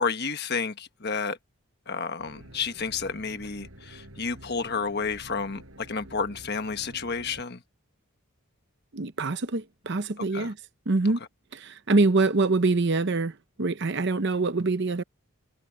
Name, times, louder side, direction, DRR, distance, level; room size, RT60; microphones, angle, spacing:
voice 1, 0.0-1.4 1.9-7.6 10.2-10.5, left 5 dB, 50° left, 1.4 m, -31 dB
sound 1, 2.2-7.4, right 1 dB, 65° right, 5.7 m, -48 dB
voice 2, 8.9-10.6 10.9-11.2 11.5-15.0, right 3 dB, 50° right, 0.8 m, -25 dB
head